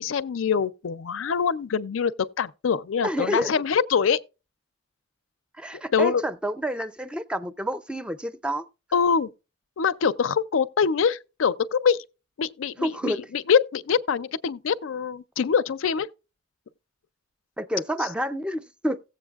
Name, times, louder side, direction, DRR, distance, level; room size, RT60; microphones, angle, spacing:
voice 1, 0.0-2.1 2.4-4.2 5.9-6.2 8.9-9.3 9.8-12.0 12.4-16.1, left 6 dB, 85° left, 0.4 m, -24 dB
voice 2, 3.0-3.5 5.6-8.6 12.8-13.2 17.6-19.0, equal, 5° right, 0.4 m, -29 dB
16.5 x 7.7 x 2.3 m
head